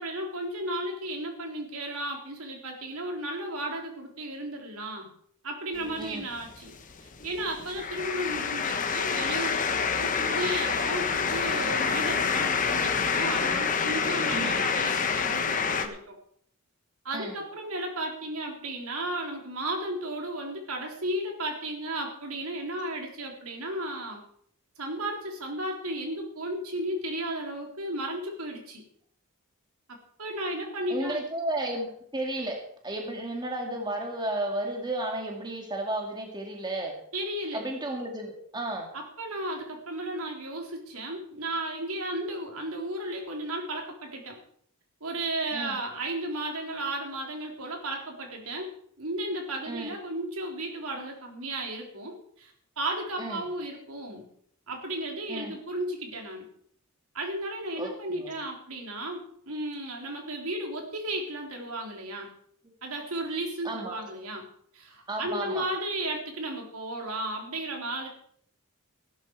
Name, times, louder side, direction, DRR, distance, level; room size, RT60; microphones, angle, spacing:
voice 1, 0.0-5.1 5.4-6.7 7.0-16.1 17.0-24.2 24.8-28.8 29.9-31.2 37.1-37.7 38.9-44.4 45.0-48.7 49.0-54.3 54.7-56.5 57.1-62.3 62.8-64.4 64.7-68.1, right 1 dB, 80° right, 1 dB, 3.8 m, -34 dB
sound 1, 5.7-15.9, left 6 dB, 35° left, 1.2 m, -28 dB
voice 2, 14.3-14.6 17.1-17.4 30.9-32.6 32.8-36.9 37.5-38.9 45.5-45.8 49.7-49.9 53.2-53.5 55.3-55.5 57.8-58.3 63.6-64.0 65.1-65.7, right 1 dB, 20° right, 1 dB, 2.1 m, -33 dB
15.5 x 12.0 x 4.7 m, 0.64 s
head